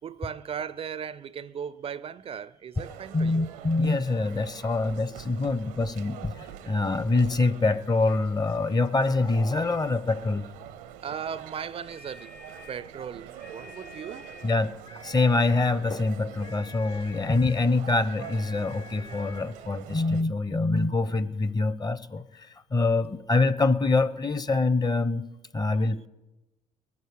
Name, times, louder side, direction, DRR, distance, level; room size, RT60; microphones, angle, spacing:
voice 1, 0.0-3.4 11.0-12.4 12.7-14.3, right 7 dB, 40° right, 0.4 m, -37 dB
sound 1, 2.7-20.2, right 10 dB, 85° right, 0.7 m, -45 dB
voice 2, 3.1-10.5 14.4-25.2 25.5-26.1, left 3 dB, 30° left, 0.8 m, -25 dB
sound 2, 11.8-12.9 13.3-14.6 14.8-15.8 16.4-17.6 18.2-19.5, left 3 dB, 65° left, 2.0 m, -49 dB
20.5 x 7.2 x 6.5 m
hypercardioid pair, 60°, 15 cm